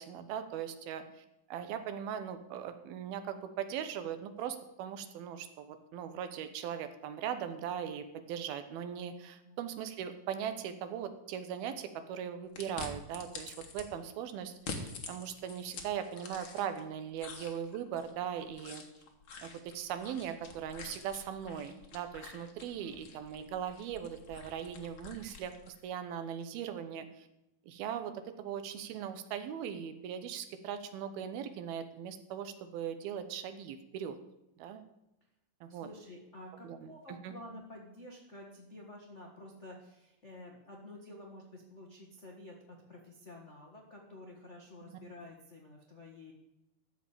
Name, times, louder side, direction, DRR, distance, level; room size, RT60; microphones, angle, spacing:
voice 1, 0.0-18.8 19.4-27.3 27.7-34.2 34.6-34.8 35.6-35.9 36.6-36.9 37.2-37.3, right 9 dB, 80° right, 9 dB, 2.8 m, -39 dB
sound 1, 12.6-13.9 14.5-16.8 17.2-25.8, left 4 dB, 55° left, 1.5 m, -47 dB
voice 2, 35.7-46.3, left 1 dB, 90° left, -1 dB, 0.6 m, -50 dB
14.0 x 5.2 x 8.7 m, 0.91 s
omnidirectional pair, 4.4 m